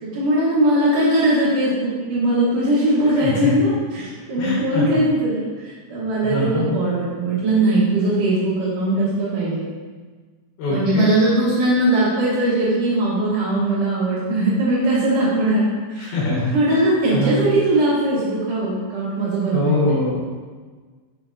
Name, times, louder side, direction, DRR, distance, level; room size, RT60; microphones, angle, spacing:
voice 1, 0.0-9.6 10.7-15.6 15.9-16.2 16.5-19.8, right 1 dB, 85° right, -8 dB, 1.8 m, -20 dB
voice 2, 3.2-3.5 4.4-5.0 6.2-6.8 10.6-11.1 16.0-16.8 17.1-17.3 19.5-20.2, left 2 dB, 65° left, -6 dB, 2.7 m, -23 dB
6.8 x 6.2 x 2.6 m, 1.5 s
omnidirectional pair, 5.8 m